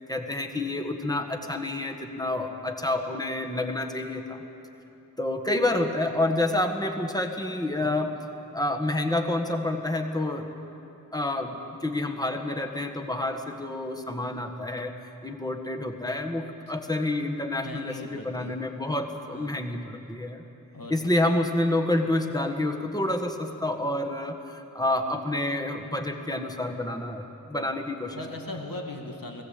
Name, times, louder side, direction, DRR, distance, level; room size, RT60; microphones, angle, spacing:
voice 1, 0.1-4.4 5.2-8.2 8.5-10.5 11.1-14.9 15.2-20.4 20.9-28.2, left 1 dB, 10° left, 3 dB, 1.7 m, -28 dB
voice 2, 17.6-18.5 19.3-19.6 20.7-21.0 28.1-29.4, left 1 dB, 70° left, 2 dB, 2.1 m, -39 dB
20.0 x 16.0 x 8.5 m, 2.8 s
wide cardioid pair, 60°, 35 cm